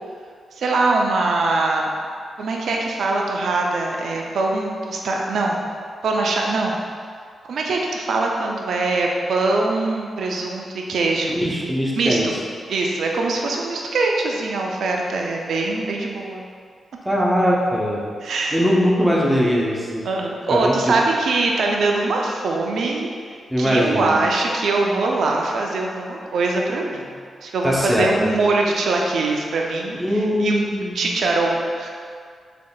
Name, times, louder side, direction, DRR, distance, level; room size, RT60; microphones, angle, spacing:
voice 1, 0.6-1.9 2.4-5.6 6.0-6.8 7.5-11.4 11.9-12.2 12.7-16.4 18.2-18.6 20.0-23.1 23.6-27.2 27.4-30.5 30.9-31.9, right 3 dB, 75° right, 0 dB, 0.4 m, -22 dB
voice 2, 11.3-12.3 17.0-18.0 18.5-20.1 20.5-21.0 23.5-24.2 27.6-28.3 29.9-31.1, equal, 5° right, -4 dB, 0.8 m, -20 dB
3.8 x 3.5 x 2.3 m, 2.1 s
supercardioid pair, 50°, 0 cm